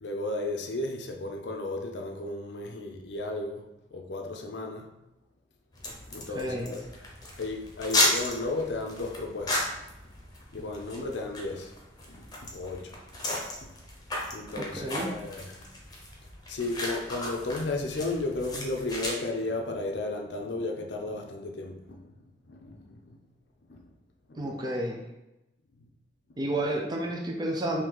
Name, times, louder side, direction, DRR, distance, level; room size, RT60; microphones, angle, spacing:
voice 1, 0.0-3.7 3.9-4.9 6.1-6.8 7.4-9.7 10.5-11.7 12.1-12.2 12.5-13.0 14.3-15.6 16.5-22.1 22.5-23.2 23.7-23.8 24.3-24.4, left 2 dB, 70° left, 0.6 m, -34 dB
sound 1, 5.7-19.1, left 1 dB, 20° left, 0.9 m, -34 dB
voice 2, 6.3-6.8 14.6-15.1 24.4-25.0 26.4-27.8, right 1 dB, 25° right, 0.5 m, -31 dB
3.8 x 2.8 x 4.5 m
head